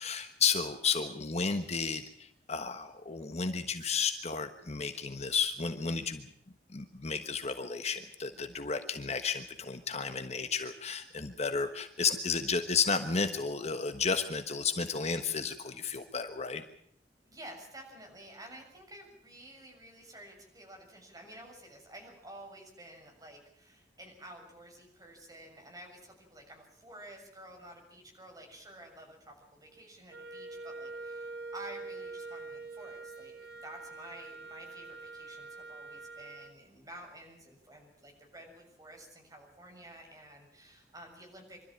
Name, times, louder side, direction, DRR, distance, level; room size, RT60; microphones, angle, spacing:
voice 1, 0.0-6.3 6.7-16.6, left 5 dB, 40° left, 8 dB, 1.3 m, -32 dB
voice 2, 17.3-33.3 33.6-41.7, right 1 dB, 20° right, 1 dB, 6.9 m, -51 dB
Wind instrument woodwind instrument, 30.1-36.6, right 3 dB, 60° right, 1.7 m, -45 dB
25.0 x 13.5 x 9.1 m, 0.66 s
head